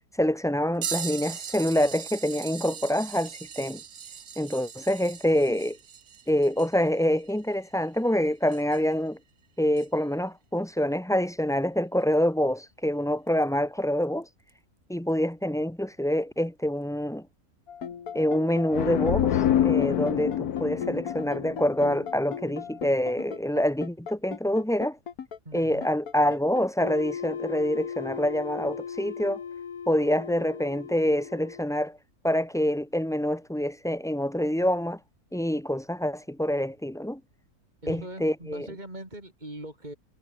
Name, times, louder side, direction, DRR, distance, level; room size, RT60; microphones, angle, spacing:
voice 1, 0.2-3.8 4.4-5.8 6.3-9.2 9.6-14.3 14.9-17.3 18.1-25.0 25.5-29.4 29.9-32.0 32.2-35.0 35.3-37.2 37.9-38.7, equal, 5° left, 0.9 m, -26 dB
sound 1, 0.8-9.0 9.7-9.9 12.1-12.2 13.3-13.4 14.5-14.6, right 8 dB, 80° right, 1.9 m, -39 dB
sound 2, 17.7-31.6, left 7 dB, 70° left, 1.9 m, -37 dB
sound 3, 18.7-22.4, left 10 dB, 90° left, 1.5 m, -26 dB
voice 2, 25.4-25.9 37.8-40.0, right 1 dB, 30° right, 6.2 m, -41 dB
omnidirectional pair, 1.6 m